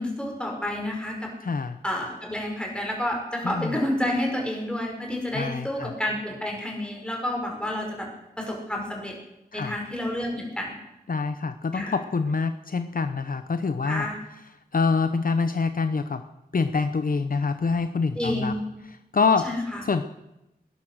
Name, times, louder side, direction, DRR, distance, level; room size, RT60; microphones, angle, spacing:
voice 1, 0.0-1.3 1.8-8.1 8.4-9.1 9.5-10.7 11.7-12.0 13.8-14.2 18.2-18.6 19.4-19.8, left 1 dB, 5° left, 0 dB, 5.5 m, -29 dB
voice 2, 1.4-1.8 3.4-3.7 5.3-5.9 9.5-9.7 11.1-14.1 14.7-16.2 16.5-18.5 19.1-19.5 19.8-20.1, left 4 dB, 60° left, 9 dB, 0.8 m, -25 dB
20.0 x 11.0 x 6.4 m, 0.92 s
wide cardioid pair, 95°, 16 cm